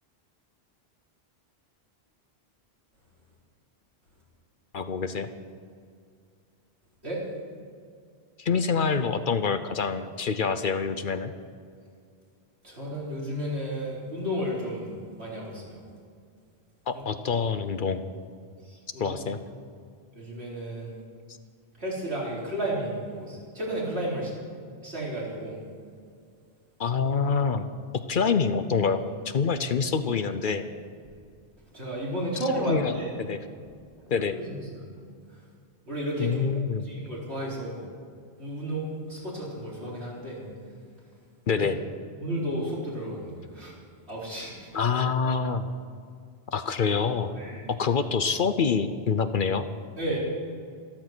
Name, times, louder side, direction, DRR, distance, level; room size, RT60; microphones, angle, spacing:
voice 1, 4.7-5.3 8.4-11.3 16.9-18.0 19.0-19.4 26.8-27.7 28.1-29.0 29.3-30.6 32.7-33.0 33.3-33.4 34.1-34.4 36.2-36.8 41.5-41.8 44.7-45.7 46.5-47.3 47.8-49.7, left 5 dB, 55° left, 10 dB, 0.8 m, -26 dB
voice 2, 12.6-15.8 16.9-17.0 18.7-19.2 20.1-21.0 21.8-24.3 24.8-25.6 31.7-33.2 34.3-34.8 35.9-36.4 36.8-37.8 38.4-40.4 41.5-41.6 42.2-43.7 44.1-44.7 47.4-47.7 49.9-50.2, right 1 dB, 80° right, -6 dB, 4.7 m, -32 dB
13.5 x 13.5 x 6.1 m, 2.3 s
omnidirectional pair, 1.1 m